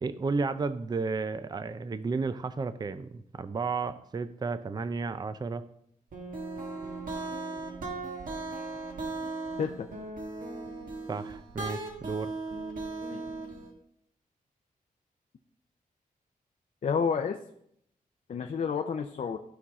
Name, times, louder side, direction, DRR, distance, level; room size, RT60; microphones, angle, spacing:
voice 1, 0.0-5.6 11.1-12.3, right 4 dB, 30° right, 12 dB, 0.4 m, -32 dB
sound 1, 6.1-13.7, right 3 dB, 65° right, 1.8 m, -37 dB
voice 2, 16.8-17.4 18.3-19.4, left 6 dB, 55° left, 4 dB, 0.6 m, -30 dB
14.5 x 5.6 x 3.6 m, 0.70 s
wide cardioid pair, 170°, 15 cm